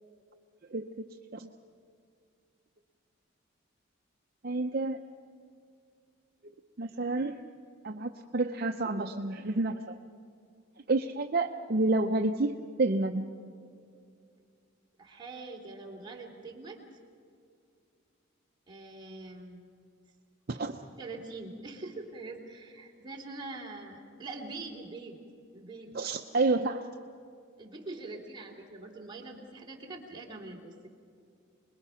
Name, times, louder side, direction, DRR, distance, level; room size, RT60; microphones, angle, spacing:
voice 1, 4.4-5.0 6.8-7.4 7.8-9.9 10.9-13.2 20.5-20.8 25.9-26.8, right 2 dB, 45° right, 5 dB, 0.6 m, -29 dB
voice 2, 15.0-16.8 18.7-19.7 20.8-25.2 25.5-25.9 27.6-30.9, right 3 dB, 20° right, -1 dB, 2.8 m, -43 dB
26.5 x 21.0 x 5.7 m, 2.4 s
head